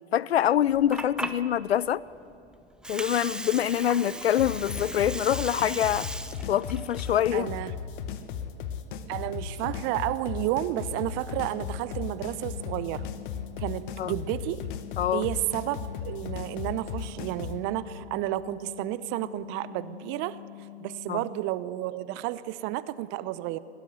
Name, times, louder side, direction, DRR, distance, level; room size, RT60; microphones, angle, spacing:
voice 1, 0.1-2.0 2.9-6.1 6.5-7.5 14.0-14.1 15.0-15.3 21.1-21.2, left 11 dB, 70° left, 22 dB, 0.6 m, -25 dB
Water, 0.6-8.5, right 1 dB, ahead, 0.8 m, -38 dB
sound 1, 4.4-17.6, left 7 dB, 50° left, 1.5 m, -36 dB
voice 2, 7.3-7.7 9.1-13.1 13.6-14.7 15.1-20.4 20.8-23.6, right 15 dB, 35° right, 16 dB, 0.8 m, -31 dB
sound 2, 11.4-21.4, left 20 dB, 35° left, 0.8 m, -46 dB
20.0 x 18.0 x 8.1 m, 2.7 s
figure-of-eight pair, 100°, 32 cm